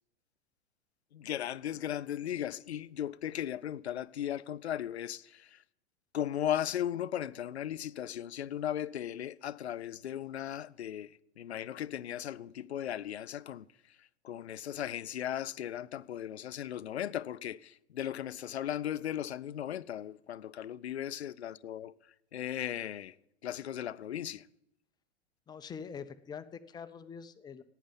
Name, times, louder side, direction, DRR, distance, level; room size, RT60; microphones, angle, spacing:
voice 1, 1.1-5.6 6.1-13.7 14.2-21.9 22.3-23.1 23.4-24.5, left 11 dB, 75° left, 0.5 m, -37 dB
voice 2, 25.5-27.6, left 6 dB, 10° left, 0.5 m, -44 dB
11.5 x 9.3 x 8.8 m
figure-of-eight pair, 95°, 33 cm